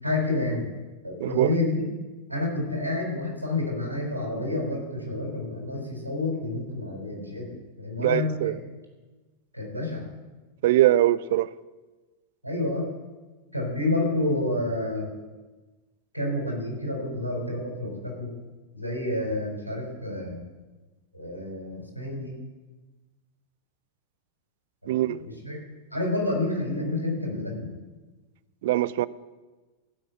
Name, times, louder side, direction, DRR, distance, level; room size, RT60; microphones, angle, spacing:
voice 1, 0.0-0.6 1.0-1.8 2.3-7.5 7.8-8.6 9.5-10.1 12.4-12.9 13.5-15.1 16.1-18.3 18.7-20.4 21.1-22.4 24.8-25.6 25.9-27.7, left 2 dB, 90° left, 4.1 m, -29 dB
voice 2, 8.0-8.5 10.6-11.5 24.9-25.2 28.6-29.1, right 14 dB, 55° right, 0.4 m, -22 dB
15.5 x 6.2 x 8.2 m
figure-of-eight pair, 90°, 0 cm